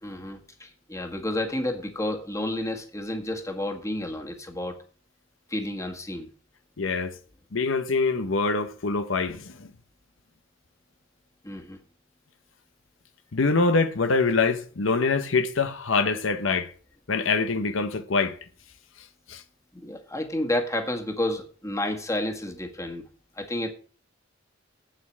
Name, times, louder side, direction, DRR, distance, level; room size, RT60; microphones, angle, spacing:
voice 1, 0.0-4.8 5.5-6.3 11.4-11.8 19.7-23.0 23.4-23.7, left 1 dB, 15° left, 1.7 m, -30 dB
voice 2, 6.8-7.2 7.5-9.7 13.3-16.7 17.1-18.3 19.3-19.4, left 4 dB, 75° left, 0.9 m, -24 dB
8.7 x 7.7 x 7.4 m
head